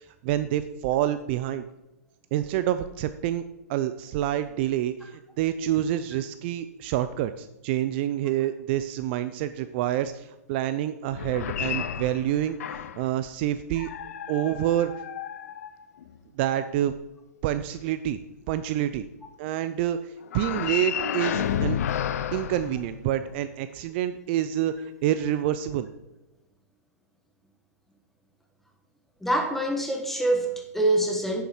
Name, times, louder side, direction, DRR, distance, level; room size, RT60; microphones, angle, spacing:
voice 1, 0.0-1.6 2.3-3.4 3.7-12.6 13.0-13.9 14.3-14.9 16.4-16.9 17.4-18.2 18.5-19.1 19.4-21.8 22.3-24.7 25.0-25.9, right 12 dB, 40° right, 11 dB, 0.5 m, -27 dB
sound 1, 11.1-13.1 13.8-16.2 20.3-23.4, left 9 dB, 65° left, 0.6 m, -31 dB
voice 2, 29.2-31.4, right 1 dB, 5° left, 3 dB, 1.3 m, -25 dB
8.7 x 7.2 x 4.5 m, 0.93 s
hypercardioid pair, 135°, 9 cm